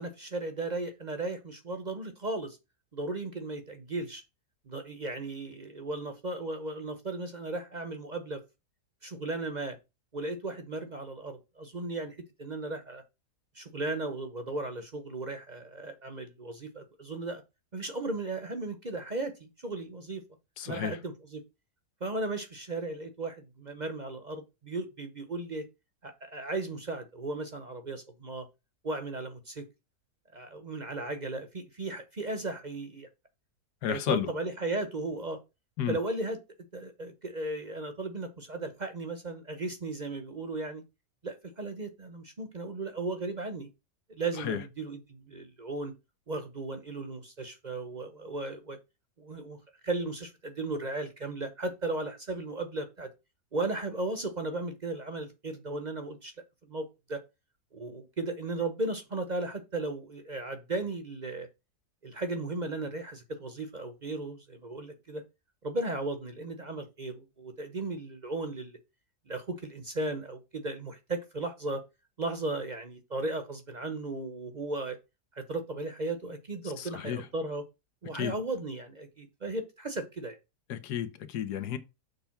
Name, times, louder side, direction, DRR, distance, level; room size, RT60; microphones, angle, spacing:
voice 1, 0.0-2.6 2.9-4.2 4.7-8.4 9.0-9.8 10.1-13.0 13.5-17.4 17.7-20.2 20.6-21.4 22.0-25.6 26.0-28.5 28.8-29.7 30.3-33.1 33.9-35.4 35.9-36.4 36.7-40.8 41.2-43.7 44.1-45.9 46.3-48.8 49.2-49.6 49.8-53.1 53.5-56.3 56.6-57.2 57.7-61.5 62.0-65.2 65.6-68.8 69.3-71.8 72.2-75.0 75.3-77.6 78.0-80.4, right 2 dB, 35° right, 0.8 m, -36 dB
voice 2, 20.6-21.0 33.8-34.3 35.8-36.0 44.4-44.6 76.8-77.2 78.1-78.3 80.7-81.8, left 9 dB, 80° left, 1.5 m, -32 dB
6.7 x 3.4 x 5.7 m
omnidirectional pair, 1.7 m